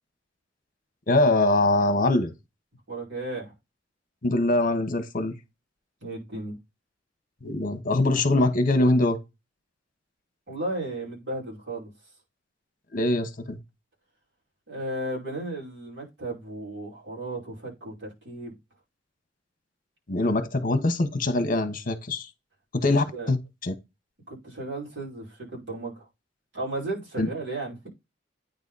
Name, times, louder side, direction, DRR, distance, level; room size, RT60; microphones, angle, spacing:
voice 1, 1.1-2.3 4.2-5.3 7.4-9.2 12.9-13.6 20.1-22.3 22.7-23.4 23.6-23.7 27.2-27.3, left 2 dB, 50° left, 1.2 m, -23 dB
voice 2, 2.9-3.5 6.0-6.6 10.5-11.9 14.7-18.5 23.1-23.3 24.3-26.1 26.5-27.9, right 2 dB, 70° right, 5.5 m, -34 dB
9.3 x 4.0 x 4.1 m
head